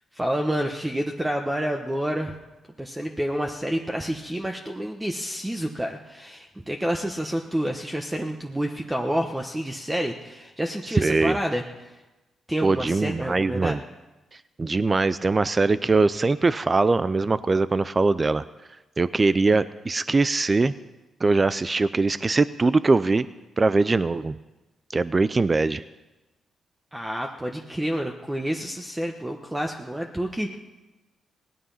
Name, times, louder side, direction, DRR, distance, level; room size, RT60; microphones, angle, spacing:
voice 1, 0.1-2.3 2.8-12.0 12.5-13.8 26.9-30.6, equal, 10° right, 2 dB, 1.2 m, -29 dB
voice 2, 10.9-11.4 12.6-13.8 14.3-18.4 19.0-20.7 21.2-23.3 23.6-24.4 24.9-25.8, right 3 dB, 30° right, 15 dB, 0.5 m, -22 dB
18.0 x 12.0 x 5.7 m, 1.1 s
cardioid pair, 70°, 0 cm